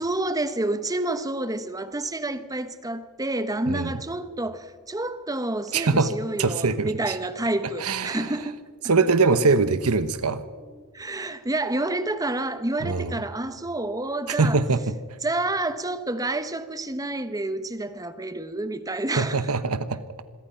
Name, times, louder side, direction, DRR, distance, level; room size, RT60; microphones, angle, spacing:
voice 1, 0.0-8.6 10.8-14.6 15.2-19.5, right 2 dB, 15° right, 1.1 m, -29 dB
voice 2, 5.7-6.1 6.4-7.2 7.8-8.3 8.8-10.4 12.8-13.2 14.3-14.9 19.2-20.0, right 4 dB, 80° right, 1.1 m, -23 dB
26.5 x 22.5 x 5.7 m
head